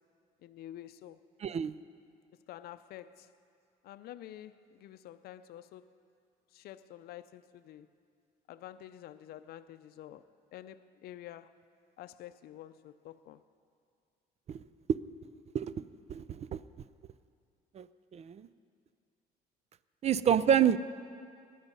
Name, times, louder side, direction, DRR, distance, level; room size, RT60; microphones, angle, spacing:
voice 1, 0.4-1.2 2.5-3.3 3.8-5.8 6.5-7.9 8.5-10.3 10.5-11.5 12.0-13.4, left 12 dB, 70° left, 12 dB, 0.5 m, -48 dB
voice 2, 1.4-1.8 14.5-14.6 15.5-16.6 17.7-17.9 18.1-18.5 20.0-20.8, right 9 dB, 40° right, 16 dB, 0.4 m, -28 dB
19.0 x 10.5 x 5.4 m, 2.3 s
cardioid pair, 110°, 17 cm